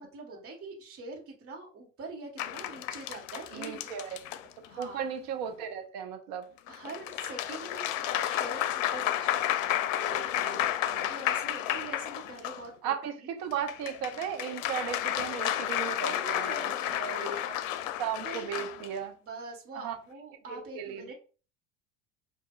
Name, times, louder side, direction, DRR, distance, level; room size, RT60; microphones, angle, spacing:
voice 1, 0.0-4.2 4.7-5.1 6.7-9.8 10.2-10.7 11.1-12.9 13.2-13.3 15.9-17.4 18.2-18.4 19.3-21.1, right 3 dB, 35° right, 1.4 m, -44 dB
sound 1, 2.4-4.8 6.7-12.7 13.5-18.9, left 12 dB, 80° left, 0.5 m, -32 dB
voice 2, 3.5-4.2 4.8-6.5 10.0-11.1 12.8-16.7 17.0-17.5 18.0-19.1 19.8-20.0 20.5-21.1, right 8 dB, 60° right, 0.9 m, -36 dB
5.0 x 2.6 x 2.4 m
hypercardioid pair, 80°, 38 cm